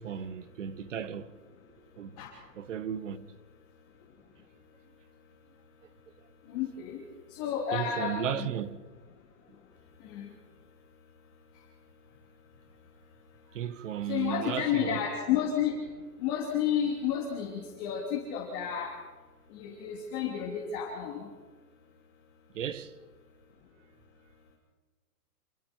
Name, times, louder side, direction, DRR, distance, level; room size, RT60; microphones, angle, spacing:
voice 1, 0.0-1.4 2.0-2.2 2.5-3.3 7.7-8.8 13.5-15.1 22.5-22.9, right 9 dB, 50° right, 1.3 m, -35 dB
voice 2, 6.5-7.0 7.3-8.5 10.0-10.3 14.1-15.8 16.2-19.0 19.5-21.3, left 9 dB, 25° left, 3.1 m, -31 dB
28.0 x 21.5 x 4.6 m
hypercardioid pair, 165°, 47 cm